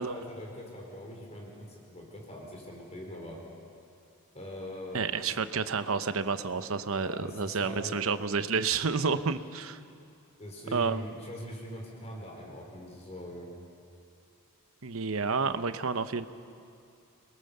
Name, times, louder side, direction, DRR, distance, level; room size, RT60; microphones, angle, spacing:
voice 1, 0.0-3.4 4.3-5.2 6.8-8.0 10.4-13.5, equal, 30° left, -1 dB, 4.4 m, -42 dB
voice 2, 4.9-9.8 10.7-11.1 14.8-16.3, right 5 dB, 65° right, 11 dB, 0.9 m, -30 dB
28.0 x 22.0 x 6.8 m, 2.5 s
head